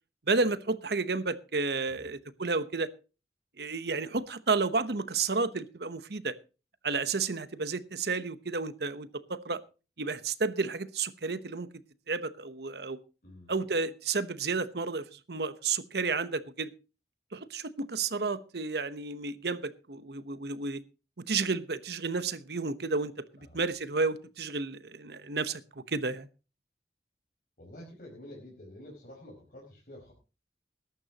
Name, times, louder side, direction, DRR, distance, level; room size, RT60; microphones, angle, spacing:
voice 1, 0.3-2.9 3.6-6.3 6.8-9.6 10.0-11.7 12.1-13.0 13.5-16.7 17.3-20.8 21.3-23.1 23.5-25.6 25.9-26.3, right 4 dB, 70° right, 13 dB, 1.0 m, -31 dB
voice 2, 13.2-13.5 23.4-23.6 27.6-30.1, left 1 dB, 50° left, -3 dB, 5.0 m, -49 dB
20.5 x 11.5 x 2.9 m, 0.32 s
head